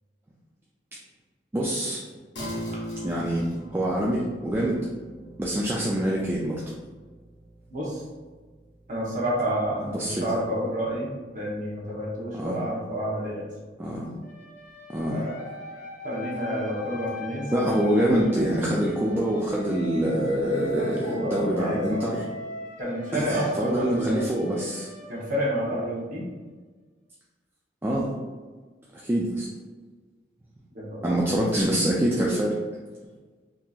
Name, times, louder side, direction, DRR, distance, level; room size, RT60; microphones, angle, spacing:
voice 1, 1.5-2.0 3.0-3.5 3.7-4.8 5.4-6.6 9.8-10.2 12.3-12.6 13.8-14.1 14.9-15.2 17.5-22.3 23.1-24.9 27.8-28.1 28.9-29.5 31.0-32.6, right 1 dB, 15° right, -4 dB, 0.4 m, -25 dB
sound 1, 2.4-12.1, equal, 75° left, 1.0 m, -42 dB
voice 2, 7.7-8.0 8.9-13.5 15.1-15.5 16.0-17.5 20.8-21.8 22.8-24.3 25.1-26.3 30.7-31.0, equal, 45° right, -6 dB, 0.9 m, -29 dB
sound 2, 14.2-26.0, left 1 dB, 50° left, 0.5 m, -40 dB
3.7 x 2.8 x 2.4 m, 1.4 s
head